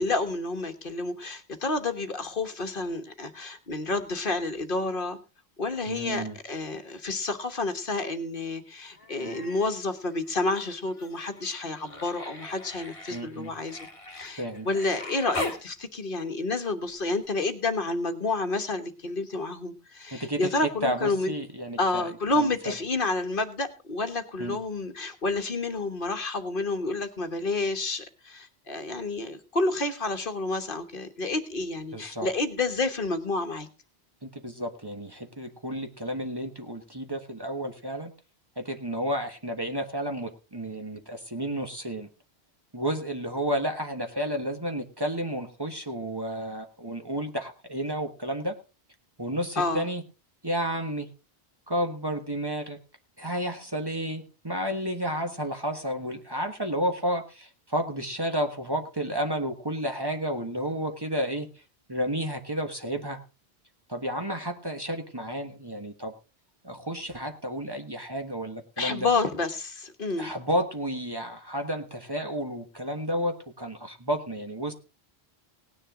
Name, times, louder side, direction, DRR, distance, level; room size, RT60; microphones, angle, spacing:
voice 1, 0.0-5.2 5.6-21.3 21.8-33.7 49.6-49.9 68.8-70.3, left 3 dB, 55° left, 8 dB, 1.4 m, -29 dB
voice 2, 5.9-6.4 9.2-9.4 13.1-13.5 14.4-14.7 20.1-22.1 22.3-22.7 24.4-24.6 31.9-32.3 34.2-38.1 38.6-42.1 42.7-48.5 49.2-50.0 50.4-51.1 51.7-52.8 53.2-61.5 61.9-63.2 63.9-66.1 66.6-69.1 70.2-74.7, equal, 20° right, 4 dB, 1.4 m, -31 dB
Human voice, 9.0-9.7 10.0-15.6 17.2-17.3, left 2 dB, 30° left, 1.8 m, -40 dB
18.0 x 9.9 x 3.7 m, 0.31 s
omnidirectional pair, 1.1 m